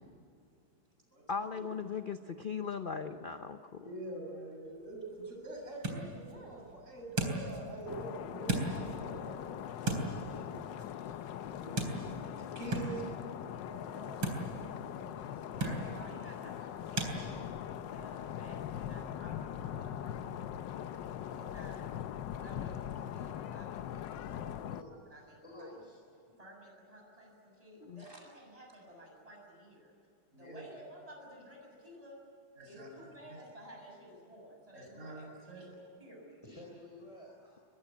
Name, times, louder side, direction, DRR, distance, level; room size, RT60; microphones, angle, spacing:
voice 1, 1.3-3.9 27.8-28.0, left 6 dB, 55° left, 8 dB, 0.5 m, -38 dB
voice 2, 3.8-10.6 11.0-11.2 11.6-13.2 13.6-14.3 14.9-16.1 28.0-28.2 30.3-30.6 32.6-33.4 34.7-35.7, right 2 dB, 35° right, 0 dB, 7.7 m, -46 dB
sound 1, 4.6-17.2, right 2 dB, 90° right, 4.6 m, -40 dB
sound 2, 7.9-24.8, left 10 dB, 70° left, 1.4 m, -41 dB
voice 3, 15.6-17.5 17.8-19.3 19.6-20.4 21.3-21.8 22.3-24.5 24.9-25.7 26.4-29.9 30.3-32.2 32.7-35.3 35.5-35.7 36.0-36.4, equal, 15° right, -1 dB, 7.1 m, -53 dB
voice 4, 23.9-24.8 25.1-26.2 36.4-37.6, left 1 dB, 15° left, -2 dB, 4.5 m, -52 dB
24.0 x 21.5 x 8.5 m, 2.5 s
omnidirectional pair, 2.2 m